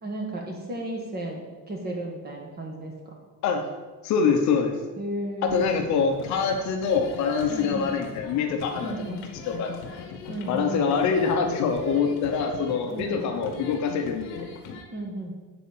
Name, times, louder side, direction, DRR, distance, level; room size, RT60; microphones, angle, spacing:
voice 1, 0.0-2.9 5.0-5.8 7.5-8.0 8.8-9.3 10.3-10.9 12.9-13.3 14.9-15.3, right 1 dB, 25° right, 1 dB, 1.4 m, -34 dB
voice 2, 4.0-4.8 5.4-8.9 9.5-9.8 10.5-14.5, left 5 dB, 45° left, 4 dB, 0.9 m, -25 dB
sound 1, 5.4-14.8, left 5 dB, 60° left, 1.5 m, -40 dB
9.1 x 4.3 x 7.1 m, 1.3 s
cardioid pair, 180°, 39 cm